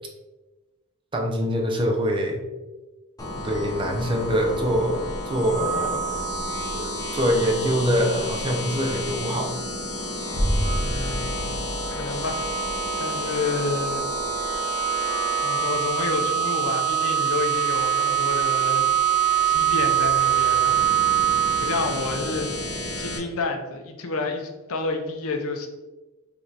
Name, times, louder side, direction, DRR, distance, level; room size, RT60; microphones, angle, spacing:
voice 1, 1.1-2.4 3.4-6.2 6.7-9.6, equal, 25° right, 1 dB, 0.6 m, -24 dB
sound 1, 3.2-23.2, left 2 dB, 15° left, 0.7 m, -32 dB
sound 2, 5.5-7.4 7.8-7.9 10.6-22.5, right 12 dB, 45° right, 1.3 m, -25 dB
voice 2, 5.6-5.9 10.8-12.5 13.0-14.0 14.3-14.6 15.4-20.9 21.6-25.7, left 3 dB, 65° left, 4 dB, 0.6 m, -30 dB
sound 3, 10.3-16.1 16.3-16.4, equal, 75° right, 1.0 m, -31 dB
5.2 x 3.3 x 2.8 m, 1.2 s
head